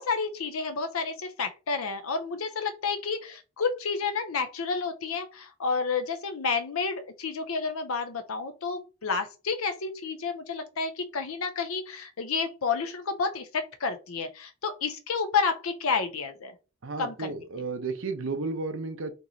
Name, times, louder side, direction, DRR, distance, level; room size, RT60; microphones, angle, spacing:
voice 1, 0.0-16.5 17.0-17.3, left 5 dB, 90° left, 7 dB, 0.6 m, -30 dB
voice 2, 16.8-19.1, right 3 dB, 70° right, 7 dB, 0.7 m, -33 dB
5.3 x 3.0 x 2.7 m, 0.31 s
head